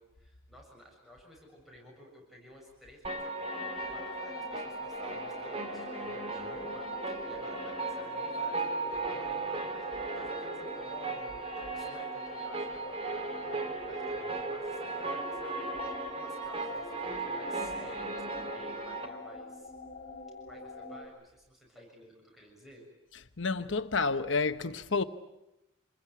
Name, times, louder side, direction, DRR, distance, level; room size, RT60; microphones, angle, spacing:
voice 1, 0.0-19.7 20.4-22.9, equal, ahead, 7.0 m, -54 dB
sound 1, 3.0-19.1, right 3 dB, 30° right, 2.2 m, -37 dB
sound 2, 3.4-21.1, left 1 dB, 40° left, 5.0 m, -44 dB
voice 2, 23.4-25.0, left 4 dB, 65° left, 1.1 m, -29 dB
27.5 x 21.5 x 9.4 m
head